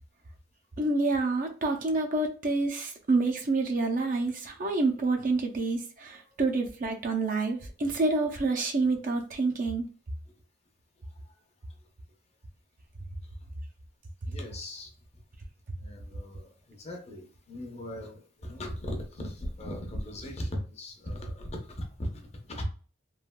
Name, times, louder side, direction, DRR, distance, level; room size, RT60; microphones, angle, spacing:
voice 1, 0.8-9.8, right 3 dB, 45° right, 3 dB, 0.5 m, -28 dB
voice 2, 14.2-14.9 15.8-22.6, left 1 dB, 35° left, 2 dB, 0.7 m, -38 dB
3.2 x 2.4 x 2.2 m, 0.38 s
head